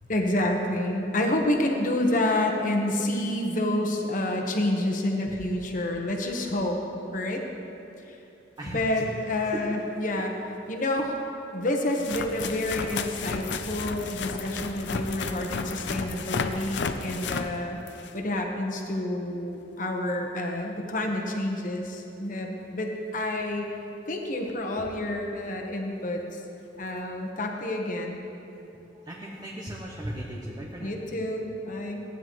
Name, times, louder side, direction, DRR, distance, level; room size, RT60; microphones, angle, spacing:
voice 1, 0.1-6.8 7.1-7.4 8.1-8.2 8.6-10.3 10.7-11.2 11.5-17.8 18.1-23.7 24.1-26.4 26.8-28.2 30.8-32.0, left 1 dB, 45° left, 2 dB, 1.1 m, -28 dB
voice 2, 8.6-9.1 9.3-9.6 26.8-27.0 28.9-31.0, right 1 dB, 25° right, -3 dB, 0.8 m, -37 dB
sound 1, 9.7-9.8 11.1-11.2 11.9-18.3 23.4-23.5 24.5-24.6 24.8-25.0 26.8-26.9, left 5 dB, 75° left, 0.5 m, -33 dB
15.5 x 9.7 x 3.1 m, 2.9 s
head